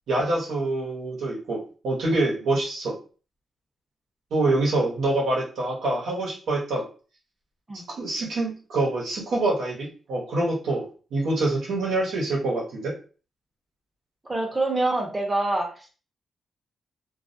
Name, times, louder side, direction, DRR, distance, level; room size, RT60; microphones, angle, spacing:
voice 1, 0.1-3.0 4.3-6.9 7.9-12.9, right 2 dB, 85° right, -3 dB, 0.8 m, -26 dB
voice 2, 14.2-15.9, right 2 dB, 20° right, 1 dB, 0.6 m, -26 dB
2.2 x 2.1 x 2.6 m, 0.37 s
cardioid pair, 90°, 0 cm